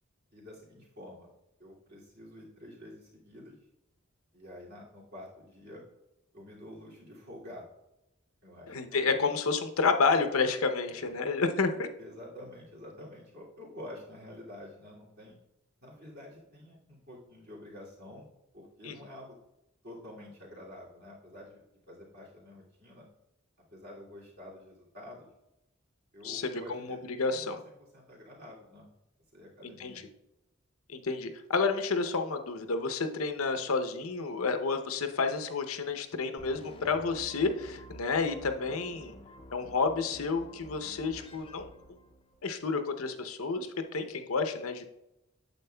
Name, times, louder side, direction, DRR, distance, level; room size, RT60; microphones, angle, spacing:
voice 1, 0.3-1.3 1.6-3.6 4.3-5.8 6.3-7.7 8.4-9.1 10.9-11.1 12.0-15.4 15.8-19.4 19.8-23.0 23.7-25.3 26.1-27.6 27.9-28.9 29.3-30.0, left 1 dB, 50° right, -5 dB, 2.4 m, -48 dB
voice 2, 8.7-11.9 18.8-18.9 26.2-27.6 29.6-29.9 30.9-39.1 39.5-41.7 42.4-44.9, left 4 dB, 85° left, 7 dB, 0.7 m, -30 dB
sound 1, 36.4-42.5, equal, 25° left, 0.5 m, -51 dB
9.1 x 7.2 x 2.2 m, 0.89 s
head